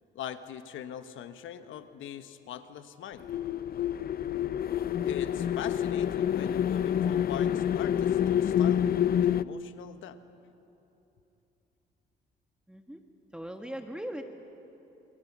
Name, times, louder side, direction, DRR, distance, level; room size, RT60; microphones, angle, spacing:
voice 1, 0.1-3.3 5.0-8.9 9.2-10.2, left 10 dB, 80° left, 10 dB, 1.3 m, -42 dB
sound 1, 3.2-9.4, left 9 dB, 50° left, 0.5 m, -27 dB
voice 2, 12.7-13.0 13.3-14.2, right 1 dB, 5° right, 4 dB, 1.6 m, -39 dB
28.5 x 26.5 x 6.1 m, 3.0 s
cardioid pair, 90°, 20 cm